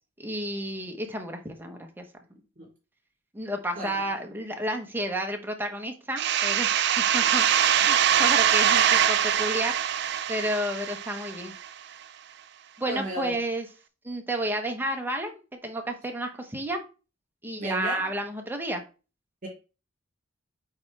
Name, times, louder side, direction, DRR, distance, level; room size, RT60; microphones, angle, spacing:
voice 1, 0.2-2.0 3.3-7.5 7.8-9.7 10.3-11.5 12.8-13.7 14.0-16.8 17.4-18.8, right 1 dB, 10° right, 1.1 m, -31 dB
sound 1, 6.2-11.7, right 9 dB, 60° right, 0.5 m, -23 dB
voice 2, 12.9-13.3 17.6-18.1 19.4-19.5, right 1 dB, 45° right, 3.7 m, -33 dB
8.8 x 4.3 x 3.4 m
head